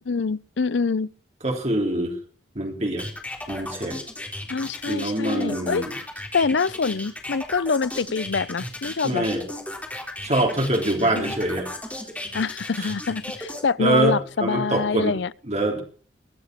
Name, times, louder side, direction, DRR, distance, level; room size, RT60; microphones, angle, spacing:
voice 1, 0.1-1.1 4.5-5.8 6.3-9.3 11.1-11.3 12.3-15.3, left 5 dB, 75° left, 0.6 m, -25 dB
voice 2, 1.4-2.2 2.5-3.1 3.5-4.0 4.9-5.9 9.0-9.4 10.2-11.7 12.8-12.9 13.8-15.2 15.4-15.8, right 1 dB, 35° right, 3.3 m, -24 dB
sound 1, 3.0-13.6, left 1 dB, 10° left, 3.8 m, -35 dB
22.5 x 8.2 x 6.0 m
head